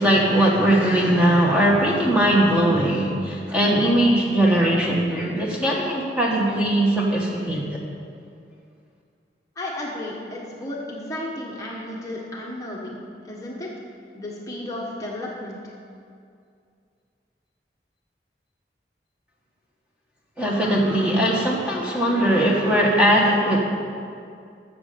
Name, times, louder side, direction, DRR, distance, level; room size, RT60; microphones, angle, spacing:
voice 1, 0.0-7.8 20.4-23.6, right 1 dB, 5° right, -3 dB, 1.5 m, -20 dB
voice 2, 9.5-13.0 13.2-13.7 14.1-15.7, left 1 dB, 20° left, -4 dB, 1.4 m, -33 dB
13.0 x 7.1 x 6.8 m, 2.4 s
head